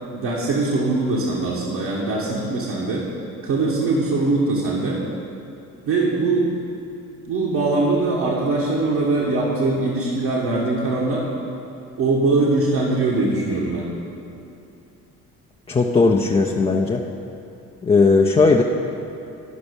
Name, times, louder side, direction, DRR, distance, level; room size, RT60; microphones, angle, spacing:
voice 1, 0.1-3.0 3.4-5.0 5.9-6.5 7.3-11.2 12.0-13.9, right 3 dB, 60° right, -5 dB, 1.4 m, -21 dB
voice 2, 15.7-17.0 17.8-18.6, left 3 dB, 15° left, 0 dB, 0.5 m, -17 dB
11.5 x 6.0 x 5.3 m, 2.8 s
figure-of-eight pair, 45°, 43 cm